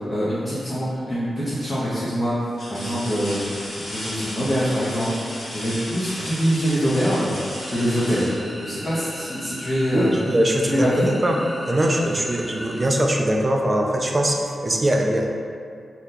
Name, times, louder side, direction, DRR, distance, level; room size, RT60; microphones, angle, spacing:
voice 1, 0.0-2.3 2.7-8.3 8.6-10.1 10.6-11.1, equal, 25° left, -11 dB, 0.6 m, -24 dB
sound 1, 0.8-1.3 1.8-1.9 2.5-9.2 11.0-11.1 11.6-12.6 13.9-14.0, left 1 dB, 70° left, 0.9 m, -35 dB
sound 2, 7.6-13.0, equal, 5° right, 0.8 m, -38 dB
voice 2, 9.9-10.9 11.2-11.4 11.7-15.3, right 1 dB, 25° right, 1 dB, 0.3 m, -21 dB
2.7 x 2.2 x 3.7 m, 2.4 s
wide cardioid pair, 135°, 0 cm